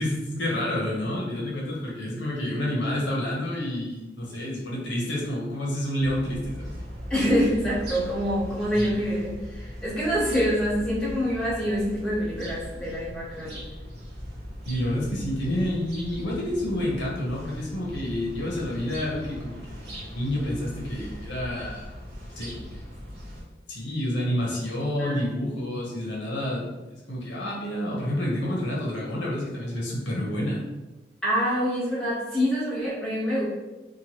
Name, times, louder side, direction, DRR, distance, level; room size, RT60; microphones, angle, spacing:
voice 1, 0.0-6.7 8.7-8.9 14.6-21.9 22.2-22.7 23.7-30.6, left 1 dB, 85° left, -4 dB, 0.8 m, -29 dB
sound 1, 6.0-23.4, equal, 65° right, 1.0 m, -39 dB
voice 2, 7.1-13.6 25.0-25.2 31.2-33.4, equal, 5° left, -11 dB, 1.3 m, -26 dB
3.0 x 2.2 x 2.9 m, 1.1 s
head